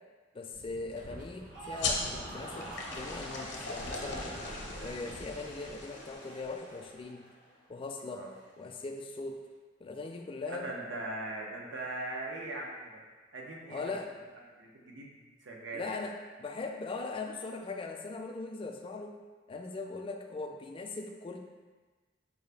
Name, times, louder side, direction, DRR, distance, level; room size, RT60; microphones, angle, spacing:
voice 1, 0.3-4.3 4.8-7.3 7.7-8.2 8.6-9.4 9.8-10.7 13.7-14.1 15.7-19.2 19.5-21.4, left 3 dB, 30° left, 3 dB, 0.3 m, -40 dB
Wind, 0.5-6.1, equal, 45° right, 0.6 m, -48 dB
sound 1, 1.3-7.7 8.0-8.5, right 1 dB, 70° right, 1.1 m, -46 dB
sound 2, 1.8-6.9, left 4 dB, 65° left, 0.7 m, -39 dB
voice 2, 10.5-13.0 13.3-13.9 14.6-15.9, right 2 dB, 85° right, -1 dB, 0.7 m, -40 dB
4.7 x 2.5 x 3.3 m, 1.4 s
head